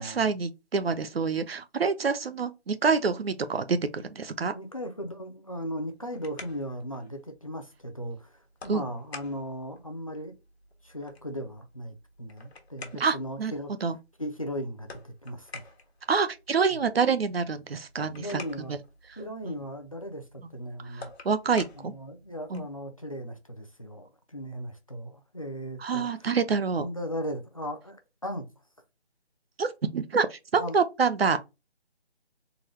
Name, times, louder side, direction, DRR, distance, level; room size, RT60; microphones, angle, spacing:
voice 1, 0.0-4.5 8.7-8.8 13.0-13.5 13.8-14.0 16.1-18.4 18.7-18.8 19.5-19.6 20.9-21.9 22.5-22.6 25.8-26.9 29.6-31.4, right 5 dB, 65° right, 0.6 m, -27 dB
voice 2, 4.5-10.3 10.8-13.7 14.2-15.7 18.1-18.8 19.2-21.1 21.7-26.3 26.8-28.5 30.6-30.8, equal, 35° left, 0.5 m, -37 dB
sound 1, 5.7-22.8, left 3 dB, 70° left, 1.2 m, -50 dB
3.8 x 2.2 x 2.9 m
figure-of-eight pair, 170°, 33 cm